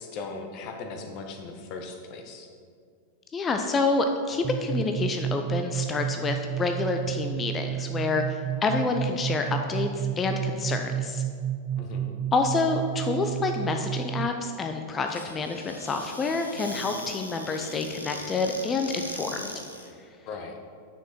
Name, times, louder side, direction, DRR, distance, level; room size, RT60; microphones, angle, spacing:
voice 1, 0.0-2.5 11.8-12.2 20.2-20.6, left 4 dB, 40° left, 4 dB, 1.2 m, -38 dB
voice 2, 3.3-11.2 12.3-19.5, left 3 dB, 20° left, 5 dB, 0.6 m, -28 dB
sound 1, 4.4-14.3, right 10 dB, 30° right, 0.3 m, -31 dB
Squeak / Cupboard open or close, 15.1-19.9, left 1 dB, 85° left, 0.9 m, -40 dB
9.3 x 6.1 x 4.5 m, 2.2 s
figure-of-eight pair, 90°, 0 cm